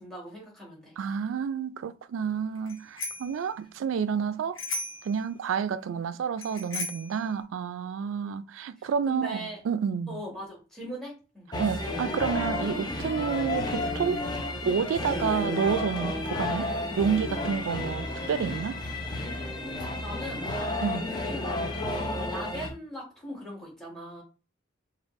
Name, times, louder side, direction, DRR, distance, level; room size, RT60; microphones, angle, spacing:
voice 1, 0.0-1.0 8.2-8.4 8.8-9.6 10.1-11.5 20.0-20.5 21.1-24.2, equal, ahead, 1.5 m, -40 dB
voice 2, 1.0-4.6 5.0-10.2 11.6-14.2 14.6-18.8 20.8-21.1, right 6 dB, 80° right, 0.3 m, -29 dB
Bicycle bell, 2.7-3.4 4.6-5.1 6.4-7.1, left 2 dB, 75° left, 1.2 m, -35 dB
sound 1, 11.5-22.7, left 2 dB, 20° left, 0.6 m, -32 dB
4.9 x 2.4 x 3.1 m
head